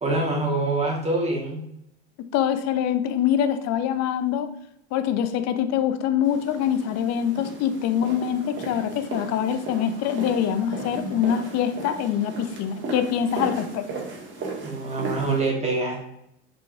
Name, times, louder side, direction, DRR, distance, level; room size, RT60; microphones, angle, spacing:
voice 1, 0.0-1.6 14.6-16.0, right 2 dB, 20° right, -2 dB, 2.4 m, -25 dB
voice 2, 2.3-4.5 4.9-13.8, left 9 dB, 50° left, 11 dB, 0.8 m, -24 dB
sound 1, 6.2-15.4, right 3 dB, 35° right, 2.1 m, -36 dB
5.4 x 5.3 x 3.3 m, 0.76 s
supercardioid pair, 105°, 33 cm